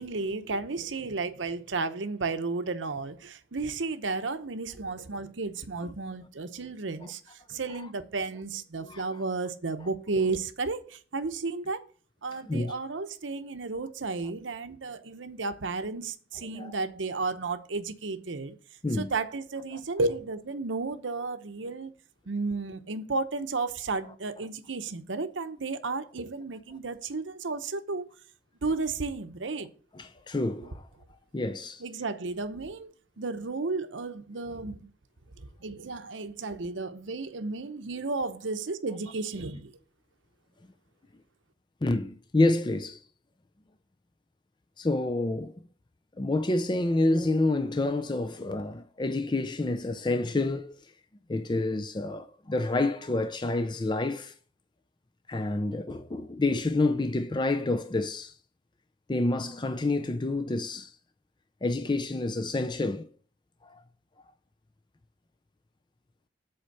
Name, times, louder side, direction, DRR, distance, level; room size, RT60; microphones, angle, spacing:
voice 1, 0.0-11.8 12.2-18.6 18.9-21.9 22.3-28.1 28.6-29.7 31.8-34.9 35.4-39.7, right 3 dB, 85° right, 0.8 m, -33 dB
voice 2, 7.5-7.9 8.8-9.0 9.8-9.9 12.5-12.7 16.5-16.7 18.8-19.1 29.9-30.8 31.3-31.8 41.8-43.0 44.8-45.6 46.2-50.7 51.3-54.3 55.3-58.3 59.1-60.9 61.6-63.1 63.6-63.8, left 2 dB, 25° left, 0.4 m, -28 dB
7.9 x 4.4 x 6.7 m
head